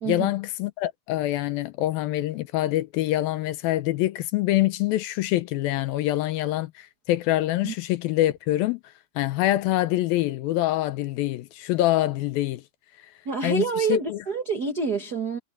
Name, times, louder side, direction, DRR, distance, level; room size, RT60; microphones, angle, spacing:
voice 1, 0.1-8.8 9.2-12.6 13.4-13.6 13.9-14.2, left 15 dB, 75° left, 2.4 m, -25 dB
voice 2, 13.2-15.4, right 5 dB, 85° right, 0.8 m, -27 dB
omnidirectional pair, 4.5 m